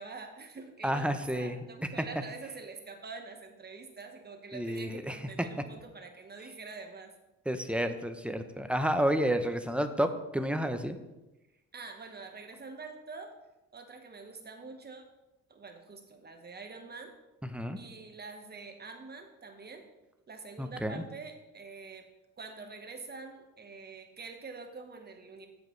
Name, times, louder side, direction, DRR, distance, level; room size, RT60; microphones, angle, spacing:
voice 1, 0.0-7.1 7.5-7.7 11.7-13.3 13.7-15.0 15.5-17.1 17.8-19.8 20.3-22.1 22.4-25.5, right 4 dB, 35° right, 5 dB, 1.2 m, -46 dB
voice 2, 0.8-1.6 4.5-5.2 7.5-11.0 17.5-17.8 20.6-21.0, equal, 5° right, 8 dB, 0.7 m, -30 dB
14.5 x 5.0 x 3.2 m, 1.0 s
cardioid pair, 90°, 30 cm